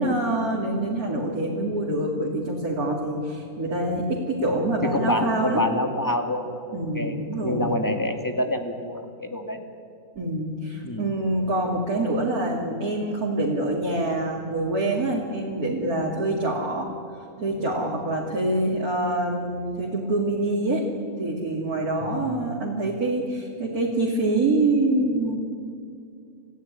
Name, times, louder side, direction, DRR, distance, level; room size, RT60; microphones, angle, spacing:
voice 1, 0.0-5.6 6.7-7.7 10.2-16.9 17.4-20.8 21.2-25.4, right 2 dB, 90° right, -3 dB, 3.2 m, -25 dB
voice 2, 4.8-7.2 7.4-9.6 10.8-11.1 22.0-22.4, left 1 dB, 15° left, 4 dB, 2.2 m, -27 dB
28.5 x 15.5 x 9.9 m, 2.5 s
omnidirectional pair, 1.5 m